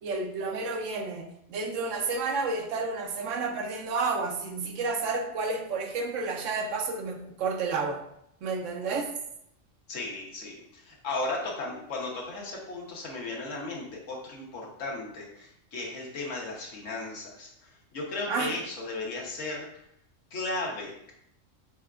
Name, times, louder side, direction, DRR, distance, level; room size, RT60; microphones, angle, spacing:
voice 1, 0.0-8.0 8.4-9.1 18.3-18.5, right 4 dB, 80° right, 4 dB, 1.0 m, -31 dB
voice 2, 9.9-19.7 20.3-21.1, left 2 dB, 75° left, -2 dB, 1.4 m, -35 dB
5.6 x 3.4 x 2.4 m, 0.75 s
omnidirectional pair, 1.3 m